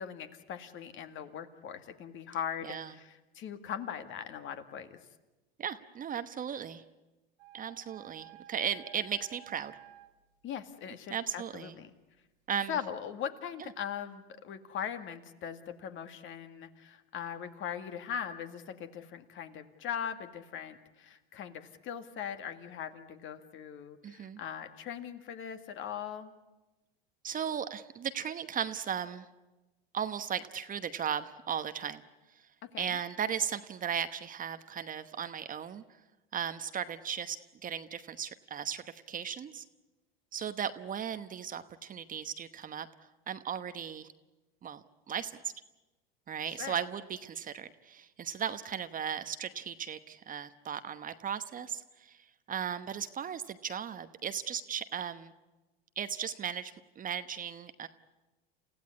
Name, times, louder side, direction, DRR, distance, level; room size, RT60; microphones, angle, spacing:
voice 1, 0.0-5.0 10.4-11.9 12.7-26.3 32.6-33.0 46.5-46.8, left 8 dB, 40° left, 9 dB, 2.0 m, -40 dB
voice 2, 5.6-6.8 7.5-9.8 11.1-11.7 12.5-12.8 24.0-24.4 27.2-29.3 29.9-32.0 32.8-35.8 36.3-37.4 37.6-39.6 40.3-42.9 43.3-44.1 44.6-45.5 46.3-55.3 56.0-57.9, right 8 dB, 30° right, 11 dB, 1.1 m, -36 dB
sound 1, 7.4-10.1, right 13 dB, 70° right, 2.3 m, -53 dB
29.0 x 15.5 x 9.7 m, 1.1 s
hypercardioid pair, 105°, 29 cm